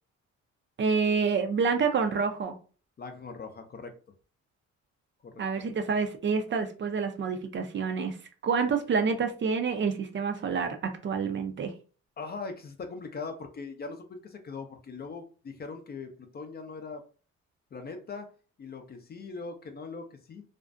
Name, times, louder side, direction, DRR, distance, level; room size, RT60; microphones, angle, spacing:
voice 1, 0.8-2.5 5.4-8.1 8.4-10.8 11.0-11.7, right 5 dB, 40° right, 6 dB, 0.4 m, -28 dB
voice 2, 3.0-3.9 5.2-5.7 12.2-17.0 17.7-18.3 18.6-20.4, left 4 dB, 35° left, 6 dB, 0.4 m, -41 dB
2.4 x 2.1 x 2.4 m, 0.37 s
cardioid pair, 90°, 30 cm